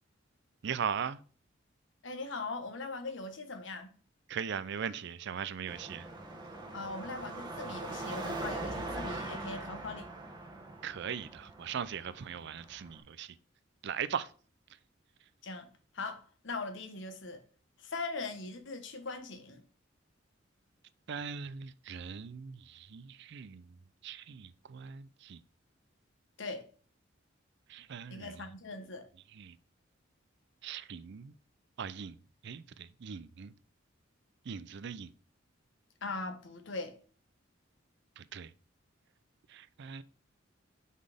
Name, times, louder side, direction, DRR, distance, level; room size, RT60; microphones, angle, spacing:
voice 1, 0.6-1.2 4.3-6.1 10.8-13.4 13.8-14.3 21.1-23.8 24.0-25.4 27.7-28.4 29.3-29.6 30.6-31.3 31.8-32.2 32.4-33.5 34.5-35.1 38.2-38.5 39.5-40.0, right 7 dB, 60° right, 0.4 m, -39 dB
voice 2, 2.0-3.9 6.7-10.1 15.4-15.7 15.9-17.4 17.8-19.6 26.4-26.6 28.1-29.1 36.0-37.0, left 3 dB, 65° left, 1.1 m, -40 dB
Car passing by / Traffic noise roadway noise / Engine, 5.7-13.0, right 2 dB, 25° right, 1.1 m, -42 dB
5.5 x 4.1 x 5.0 m
head